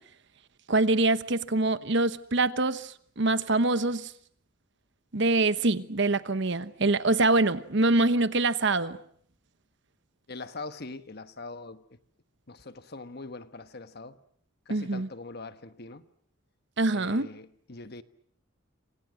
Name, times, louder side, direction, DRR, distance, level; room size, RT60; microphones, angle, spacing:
voice 1, 0.7-4.1 5.1-9.0 14.7-15.1 16.8-17.3, right 2 dB, 60° right, 1.1 m, -25 dB
voice 2, 10.3-12.0 12.5-14.2 14.7-16.1 16.9-18.0, left 3 dB, 50° left, 1.2 m, -42 dB
28.0 x 26.5 x 6.4 m
head